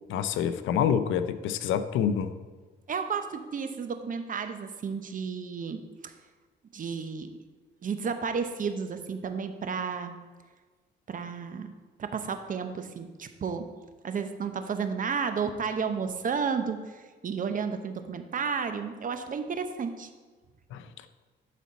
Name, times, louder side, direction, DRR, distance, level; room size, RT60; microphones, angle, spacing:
voice 1, 0.1-2.3 20.7-20.8, left 8 dB, 80° left, 12 dB, 0.5 m, -27 dB
voice 2, 2.9-6.1 6.7-7.3 7.8-10.2 11.1-13.7 14.0-20.1, right 6 dB, 45° right, 8 dB, 0.7 m, -32 dB
11.0 x 4.2 x 4.1 m, 1.4 s
cardioid pair, 90°, 20 cm